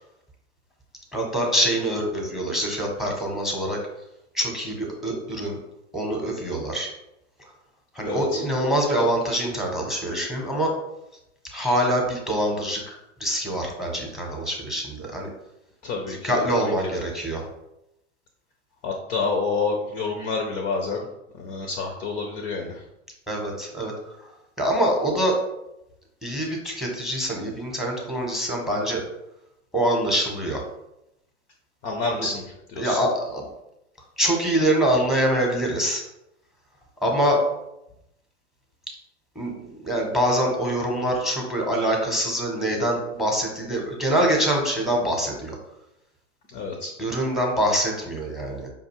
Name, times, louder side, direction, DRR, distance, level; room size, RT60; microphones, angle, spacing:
voice 1, 1.1-3.8 4.3-5.6 5.9-6.9 7.9-10.8 11.5-15.3 16.1-17.4 23.3-24.2 24.6-25.4 26.2-29.0 29.7-30.6 32.2-32.3 32.8-33.4 34.2-36.0 37.0-37.4 39.3-45.6 47.0-48.7, right 1 dB, ahead, 1 dB, 0.7 m, -25 dB
voice 2, 8.0-8.4 15.8-16.4 16.8-17.0 18.8-21.1 21.3-22.8 31.8-33.0 46.5-46.9, left 4 dB, 25° left, 2 dB, 0.3 m, -28 dB
4.9 x 2.3 x 2.9 m, 0.86 s
hypercardioid pair, 110°, 38 cm